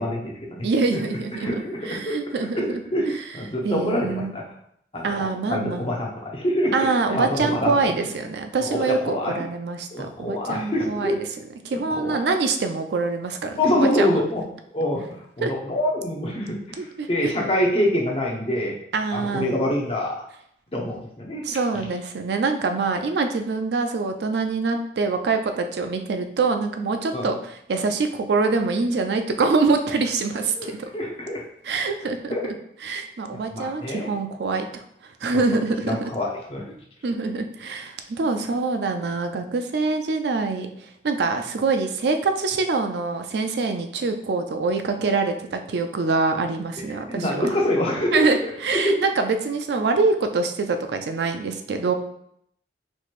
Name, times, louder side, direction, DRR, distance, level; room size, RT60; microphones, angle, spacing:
voice 1, 0.0-0.7 1.4-2.2 2.5-4.4 4.9-7.9 8.6-9.4 9.9-11.2 11.7-12.2 13.6-14.4 14.7-18.7 19.1-20.2 20.7-21.4 27.1-27.3 30.4-31.4 32.3-32.5 33.3-34.1 35.3-35.4 35.8-36.7 46.9-49.0, left 1 dB, 30° left, -1 dB, 0.7 m, -26 dB
voice 2, 0.6-1.6 1.9-2.8 3.6-4.3 5.0-5.9 6.7-11.1 11.6-14.2 15.4-15.5 16.8-17.1 18.9-19.5 21.4-30.9 31.6-32.5 32.8-36.0 37.0-40.7 41.0-47.5 48.1-51.9, right 4 dB, 65° right, 6 dB, 0.4 m, -25 dB
4.4 x 3.1 x 2.5 m, 0.71 s
head